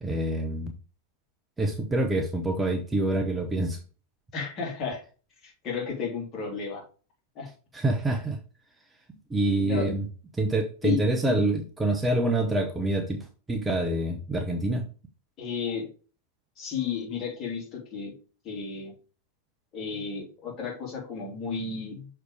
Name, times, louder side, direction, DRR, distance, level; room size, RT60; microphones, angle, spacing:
voice 1, 0.0-0.7 1.6-3.8 7.7-8.4 9.3-10.1 10.3-14.8, right 2 dB, 10° right, 4 dB, 0.8 m, -26 dB
voice 2, 4.3-5.0 5.4-6.8 7.3-7.5 9.6-9.9 10.8-11.3 15.4-15.9 16.6-18.1 18.4-18.9 19.7-22.1, left 6 dB, 30° left, -1 dB, 2.8 m, -33 dB
6.4 x 3.4 x 4.9 m, 0.37 s
figure-of-eight pair, 90°, 0 cm